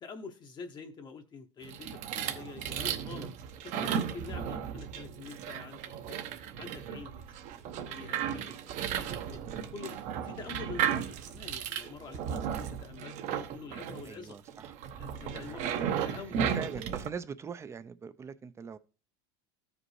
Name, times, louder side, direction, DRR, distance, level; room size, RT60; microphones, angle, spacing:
voice 1, 0.0-3.3 3.7-6.2 6.6-7.2 7.9-9.4 9.7-14.4 15.0-16.8, left 4 dB, 30° left, 0.8 m, -46 dB
sound 1, 1.6-17.1, right 8 dB, 55° right, 0.9 m, -35 dB
voice 2, 14.0-14.7 15.2-16.2 16.5-18.8, right 6 dB, 20° right, 0.5 m, -43 dB
13.5 x 5.1 x 3.2 m
supercardioid pair, 125°, 15 cm